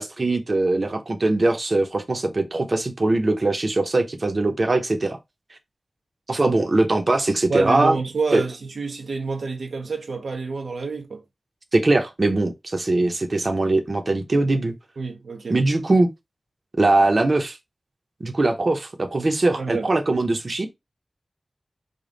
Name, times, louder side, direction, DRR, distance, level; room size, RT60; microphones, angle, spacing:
voice 1, 0.0-5.2 6.3-8.0 8.3-8.4 11.7-14.7 15.5-16.1 16.8-17.6 18.2-20.7, right 2 dB, 50° right, 0.9 m, -21 dB
voice 2, 7.5-11.2 15.0-15.6 19.6-19.9, right 4 dB, 90° right, 0.8 m, -28 dB
5.1 x 2.4 x 4.0 m
wide cardioid pair, 85°, 0 cm